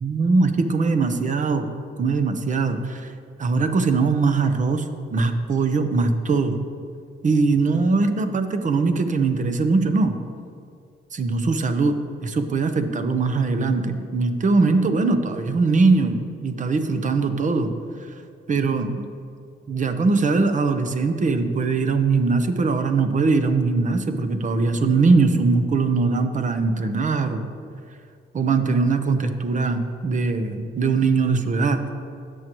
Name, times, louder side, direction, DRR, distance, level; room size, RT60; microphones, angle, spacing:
voice 1, 0.0-1.7 2.0-3.1 3.4-4.9 5.1-6.6 7.2-10.2 11.1-11.9 12.2-17.7 18.5-19.1 19.7-27.5 28.3-31.8, right 4 dB, 40° right, 8 dB, 0.9 m, -21 dB
16.5 x 6.4 x 3.1 m, 2.3 s
cardioid pair, 90°, 20 cm